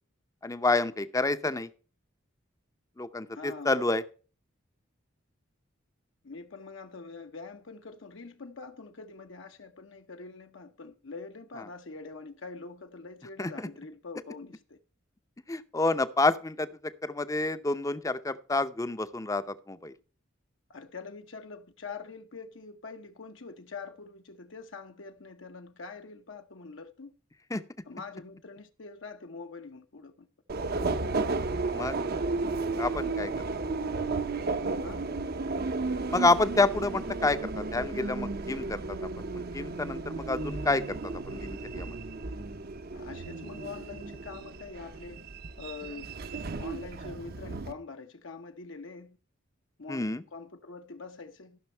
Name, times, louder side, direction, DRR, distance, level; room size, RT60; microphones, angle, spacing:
voice 1, 0.4-1.7 3.0-4.0 13.4-13.7 15.5-16.7 17.0-19.9 27.5-27.6 31.7-32.0 32.8-33.3 36.1-42.0 49.9-50.2, left 3 dB, 15° left, 0.6 m, -29 dB
voice 2, 3.3-3.8 6.2-14.8 20.7-27.1 27.9-30.3 32.1-32.5 34.8-35.0 42.9-45.2 45.6-46.1 46.4-49.2 49.8-51.6, left 4 dB, 70° left, 0.9 m, -44 dB
Subway metro underground, 30.5-47.7, right 3 dB, 50° right, 0.7 m, -33 dB
14.0 x 6.2 x 4.4 m
head